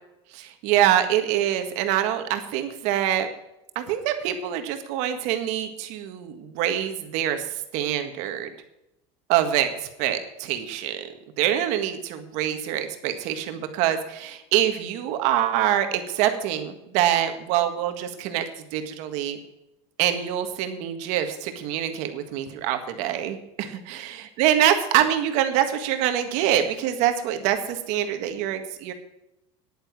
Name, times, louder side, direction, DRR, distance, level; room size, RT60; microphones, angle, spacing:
voice 1, 0.3-3.3 3.7-7.4 7.7-8.5 9.3-11.1 11.4-18.4 18.7-19.4 20.0-28.9, right 11 dB, 60° right, 7 dB, 1.7 m, -25 dB
10.5 x 9.1 x 6.1 m, 0.89 s
cardioid pair, 155°, 14 cm